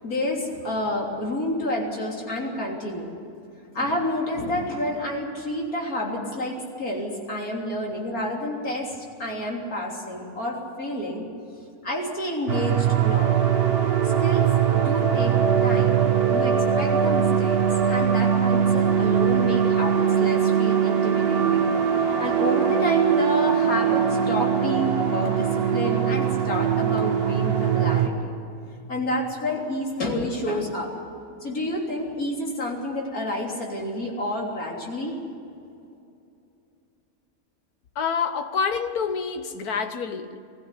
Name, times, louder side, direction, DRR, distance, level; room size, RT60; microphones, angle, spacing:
voice 1, 0.0-3.1 3.7-11.3 11.8-13.5 14.0-16.0 16.3-21.7 22.0-28.3 28.9-30.9 31.4-35.2, left 1 dB, 75° left, -1 dB, 3.8 m, -29 dB
sound 1, 12.5-28.1, right 8 dB, 45° right, 1.4 m, -21 dB
voice 2, 37.9-40.4, left 6 dB, 90° left, 8 dB, 1.7 m, -27 dB
21.5 x 15.0 x 10.0 m, 2.7 s
omnidirectional pair, 1.6 m